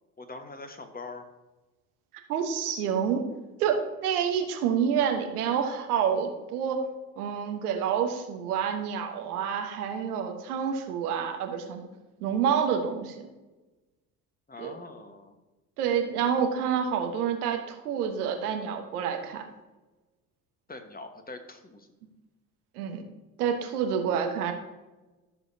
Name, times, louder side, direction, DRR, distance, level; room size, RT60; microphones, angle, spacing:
voice 1, 0.2-1.2 14.5-15.3 20.7-21.9, left 3 dB, 20° left, 6 dB, 1.4 m, -43 dB
voice 2, 2.3-3.2 3.6-6.9 7.2-11.9 12.2-13.2 14.6-14.7 15.8-19.4 22.7-23.0 23.4-24.5, right 7 dB, 80° right, 4 dB, 1.3 m, -28 dB
13.5 x 7.0 x 2.8 m, 1.1 s
hypercardioid pair, 55°, 44 cm